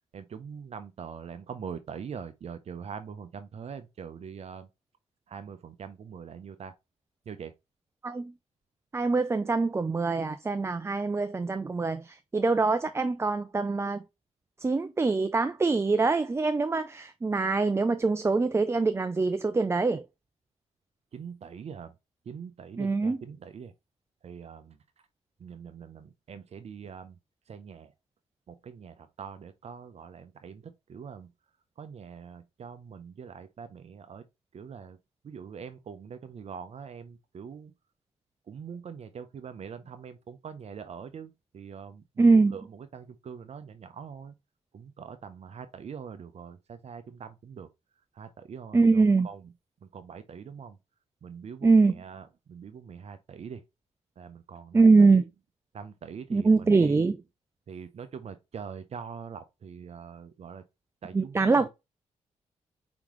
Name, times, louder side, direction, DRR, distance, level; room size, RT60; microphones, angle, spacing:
voice 1, 0.1-4.7 5.3-6.7 7.3-7.5 21.1-21.9 22.2-23.7 24.2-24.8 25.4-27.2 27.5-27.9 28.5-31.3 31.8-34.2 34.5-35.0 35.2-37.7 38.5-44.3 44.7-47.7 48.1-49.5 49.8-50.8 51.2-53.6 54.2-55.3 55.7-57.0 57.7-60.6 61.0-61.7, right 6 dB, 55° right, 0.7 m, -43 dB
voice 2, 8.9-14.0 14.6-20.0 22.8-23.2 42.2-42.5 48.7-49.3 51.6-51.9 54.7-55.2 56.3-57.2 61.1-61.7, right 3 dB, 20° right, 0.4 m, -23 dB
4.9 x 3.6 x 3.0 m
cardioid pair, 70°, 13 cm